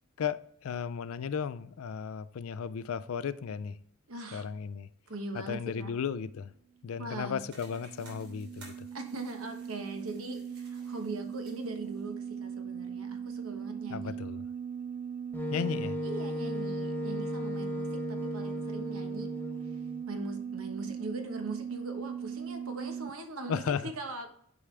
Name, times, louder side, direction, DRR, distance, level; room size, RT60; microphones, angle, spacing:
voice 1, 0.2-3.8 4.3-4.9 5.3-6.5 6.8-8.7 13.9-14.4 15.5-16.0 23.5-23.9, left 7 dB, 70° left, 0.4 m, -35 dB
voice 2, 4.1-4.5 5.1-5.9 7.0-7.4 8.9-14.2 16.0-19.3 19.6-19.8 20.1-24.3, right 2 dB, 70° right, 1.2 m, -41 dB
sound 1, 6.9-23.1, right 7 dB, 35° right, 0.4 m, -39 dB
sound 2, 7.5-12.1, right 3 dB, 90° right, 3.0 m, -57 dB
Wind instrument woodwind instrument, 15.3-20.0, left 1 dB, 10° left, 0.9 m, -36 dB
10.0 x 4.9 x 3.3 m
head